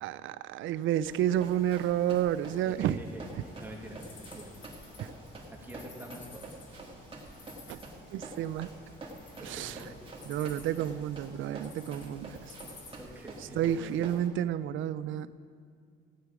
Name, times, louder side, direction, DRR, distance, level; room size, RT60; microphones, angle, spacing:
voice 1, 0.0-3.0 5.0-5.1 7.7-7.8 8.1-8.7 9.4-9.8 10.3-12.5 13.6-15.4, right 11 dB, 80° right, 14 dB, 0.5 m, -30 dB
Run, 1.0-14.3, right 2 dB, 25° right, 2.4 m, -48 dB
voice 2, 2.7-4.6 5.5-6.5 9.4-9.9 10.6-10.8 13.0-13.9, right 1 dB, 10° right, -1 dB, 2.4 m, -46 dB
sound 1, 3.1-13.0, left 3 dB, 65° left, 2.2 m, -53 dB
15.5 x 9.5 x 5.0 m, 2.3 s
cardioid pair, 90°, 20 cm